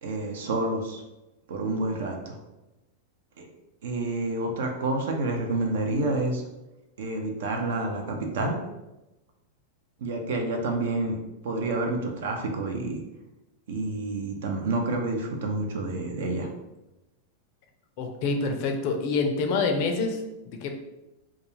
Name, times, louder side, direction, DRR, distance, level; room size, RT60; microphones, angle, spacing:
voice 1, 0.0-1.0 1.5-2.4 3.4-3.5 3.8-6.4 7.0-8.6 10.0-11.2 11.4-13.0 13.7-16.5, right 2 dB, 65° right, 3 dB, 0.5 m, -29 dB
voice 2, 18.0-20.7, left 4 dB, 50° left, 4 dB, 0.4 m, -27 dB
2.3 x 2.3 x 3.0 m, 0.99 s
figure-of-eight pair, 95°, 0 cm